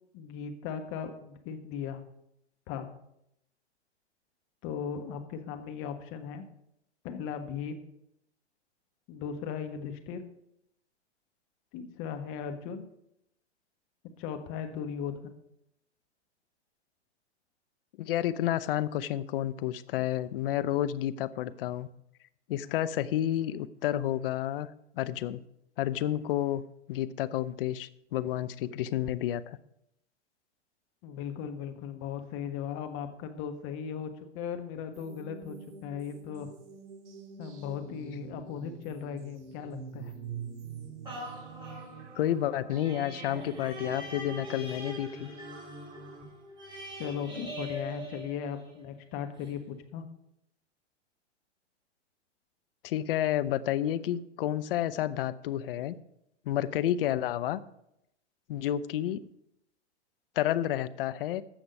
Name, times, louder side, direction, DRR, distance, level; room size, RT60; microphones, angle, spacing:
voice 1, 0.1-2.0 2.7-2.9 4.6-6.5 7.0-7.8 9.1-10.2 11.7-12.8 14.2-15.4 31.0-36.5 37.4-40.1 47.0-50.0, left 7 dB, 35° left, 6 dB, 1.4 m, -37 dB
voice 2, 18.0-21.9 22.5-24.7 24.9-25.4 25.8-26.6 26.9-29.6 42.2-45.3 52.8-56.0 56.5-57.6 58.5-59.2 60.4-61.4, left 12 dB, 55° left, 13 dB, 0.7 m, -30 dB
sound 1, 34.9-46.2, right 5 dB, 40° right, 2.3 m, -46 dB
sound 2, 41.0-48.9 49.4-49.5, equal, 15° right, 5.0 m, -43 dB
15.0 x 6.0 x 5.3 m, 0.79 s
hypercardioid pair, 110°, 35 cm